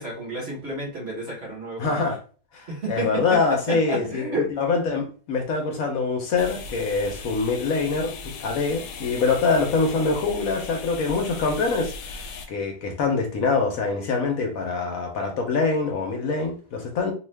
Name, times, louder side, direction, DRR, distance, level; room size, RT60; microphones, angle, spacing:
voice 1, 0.0-2.1 2.7-4.5, right 2 dB, 45° right, 1.3 m, -31 dB
voice 2, 1.8-2.2 2.5-12.2 12.5-17.1, left 4 dB, 65° left, 1.1 m, -24 dB
sound 1, 6.4-12.5, left 3 dB, 90° left, 1.1 m, -38 dB
2.8 x 2.3 x 3.3 m
omnidirectional pair, 1.7 m